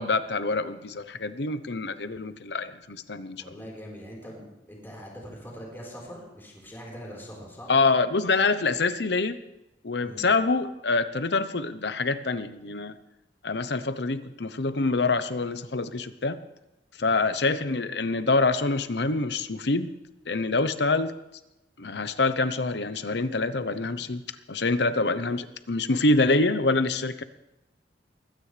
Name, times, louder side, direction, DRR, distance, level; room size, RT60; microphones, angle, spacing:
voice 1, 0.0-3.5 7.7-9.4 9.8-12.9 13.4-16.4 17.0-19.9 20.3-21.1 21.8-24.2 24.5-27.2, left 3 dB, 65° left, 12 dB, 0.9 m, -26 dB
voice 2, 3.4-7.7 10.0-10.3 17.0-17.2, equal, 15° left, -3 dB, 4.6 m, -42 dB
22.5 x 16.5 x 3.4 m, 0.94 s
head